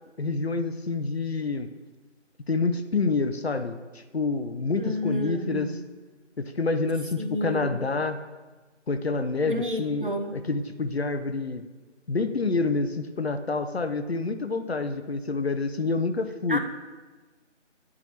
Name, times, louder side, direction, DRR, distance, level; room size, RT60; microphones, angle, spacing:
voice 1, 0.2-1.7 2.5-5.8 6.4-8.2 8.9-11.6 12.1-16.6, left 3 dB, 60° left, 9 dB, 0.5 m, -28 dB
voice 2, 4.8-5.8 7.2-7.9 9.5-10.4 16.5-16.6, equal, 45° right, 5 dB, 0.5 m, -31 dB
9.4 x 4.7 x 2.8 m, 1.3 s
figure-of-eight pair, 165°, 37 cm